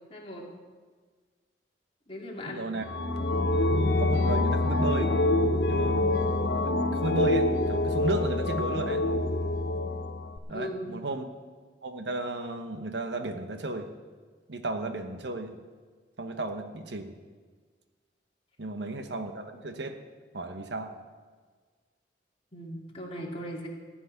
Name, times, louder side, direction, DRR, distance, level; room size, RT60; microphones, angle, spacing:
voice 1, 0.1-0.5 2.1-2.7 10.5-10.9 22.5-23.7, equal, 30° left, -1 dB, 2.4 m, -38 dB
voice 2, 2.5-2.9 3.8-5.1 5.6-6.2 6.6-9.0 10.5-11.2 11.8-13.9 14.5-15.5 16.2-17.1 18.6-20.0 20.3-20.9, right 2 dB, 70° right, 7 dB, 1.1 m, -34 dB
sound 1, 2.8-10.4, left 2 dB, 60° left, 0.9 m, -26 dB
15.0 x 6.2 x 9.6 m, 1.5 s
head